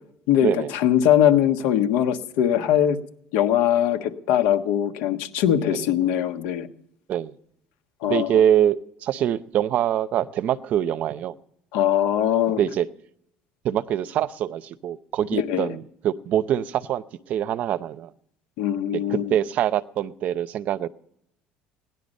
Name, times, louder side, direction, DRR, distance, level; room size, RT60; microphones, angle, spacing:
voice 1, 0.3-3.0 3.3-6.7 8.0-8.3 11.7-12.6 15.3-15.7 18.6-19.3, left 10 dB, 80° left, 1.4 m, -21 dB
voice 2, 8.1-11.4 12.6-12.9 13.6-18.1 19.1-20.9, right 10 dB, 45° right, 0.7 m, -24 dB
18.0 x 10.5 x 5.3 m
cardioid pair, 145°, 4 cm